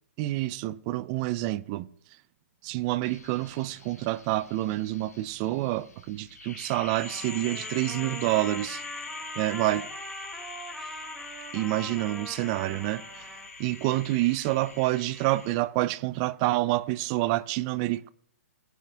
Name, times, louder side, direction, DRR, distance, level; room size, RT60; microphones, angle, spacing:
voice 1, 0.2-1.9 2.6-8.8 9.4-9.9 11.5-13.3 13.6-18.1, right 17 dB, 30° right, 0.6 m, -28 dB
sound 1, 3.0-15.6, left 4 dB, 90° left, 2.0 m, -43 dB
Trumpet, 6.9-13.5, equal, ahead, 1.6 m, -43 dB
19.5 x 9.2 x 3.4 m
hypercardioid pair, 150°, 8 cm